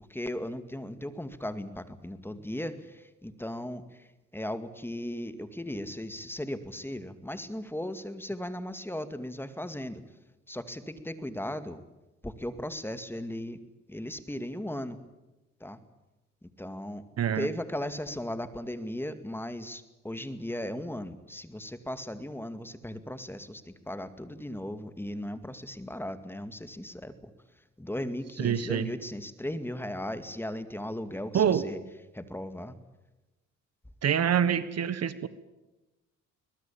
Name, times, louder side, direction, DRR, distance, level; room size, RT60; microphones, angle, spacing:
voice 1, 0.1-4.1 4.3-10.0 10.5-11.8 12.2-13.6 13.9-15.0 15.6-15.8 16.6-17.0 17.4-27.3 27.8-31.8 32.1-32.8, left 1 dB, 5° left, 10 dB, 2.2 m, -37 dB
voice 2, 17.2-17.5 28.4-28.9 31.3-31.6 34.0-35.3, right 9 dB, 55° right, 14 dB, 1.4 m, -26 dB
23.0 x 20.5 x 8.7 m, 1.1 s
cardioid pair, 90°, 30 cm